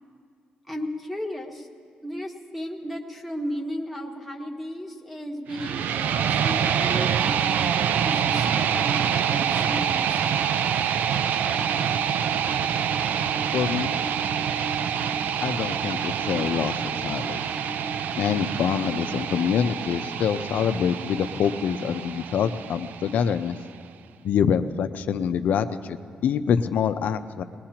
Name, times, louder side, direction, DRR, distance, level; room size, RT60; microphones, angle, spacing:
voice 1, 0.7-1.7 2.0-7.6 8.0-10.8, equal, 5° right, 1 dB, 1.4 m, -34 dB
sound 1, 5.5-23.5, right 8 dB, 75° right, 0.4 m, -26 dB
sound 2, 11.5-20.0, right 1 dB, 55° right, 4.5 m, -39 dB
voice 2, 13.5-14.0 15.4-17.4 18.2-23.6 24.2-27.4, left 7 dB, 70° left, 9 dB, 0.6 m, -25 dB
20.5 x 20.0 x 2.9 m, 2.1 s
cardioid pair, 130°, 3 cm